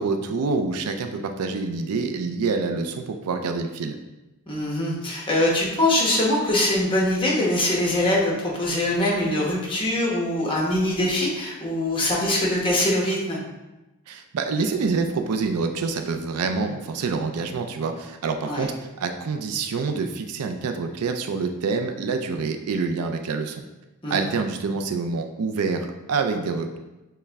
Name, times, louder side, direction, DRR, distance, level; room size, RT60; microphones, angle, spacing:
voice 1, 0.0-4.0 14.1-23.6 24.1-26.8, right 4 dB, 80° right, 6 dB, 0.4 m, -26 dB
voice 2, 4.5-13.4 18.4-18.7 24.0-24.2, left 1 dB, 25° left, -4 dB, 1.0 m, -23 dB
6.4 x 2.2 x 3.5 m, 1.0 s
head